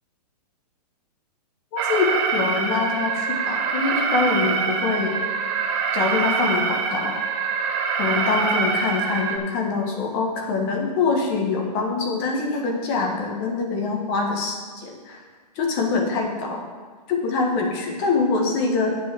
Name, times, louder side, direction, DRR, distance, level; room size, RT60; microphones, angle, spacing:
voice 1, 1.7-5.1 5.9-7.2 8.0-15.2 15.6-16.6 17.1-19.0, left 4 dB, 35° left, 2 dB, 1.6 m, -24 dB
Alarm, 1.8-9.4, right 5 dB, 35° right, 1.0 m, -24 dB
8.7 x 5.7 x 7.1 m, 1.5 s
hypercardioid pair, 145°, 21 cm